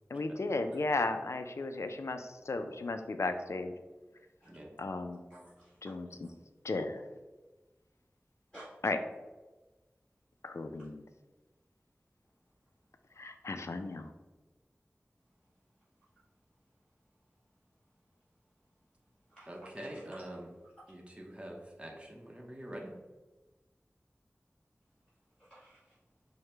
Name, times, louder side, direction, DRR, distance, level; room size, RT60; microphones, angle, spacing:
voice 1, 0.1-3.7 4.8-5.2 5.8-6.3 6.6-7.0 8.8-9.0 10.4-11.0 13.2-14.1, left 3 dB, 75° left, 7 dB, 0.3 m, -35 dB
voice 2, 5.3-5.9 6.2-6.3 8.5-8.7 19.3-19.5 19.7-20.0 25.4-26.0, right 1 dB, 15° left, -11 dB, 1.3 m, -54 dB
voice 3, 19.5-20.5 20.9-22.9, right 1 dB, 25° right, -1 dB, 0.8 m, -45 dB
4.7 x 2.1 x 3.2 m, 1.2 s
wide cardioid pair, 45°, 5 cm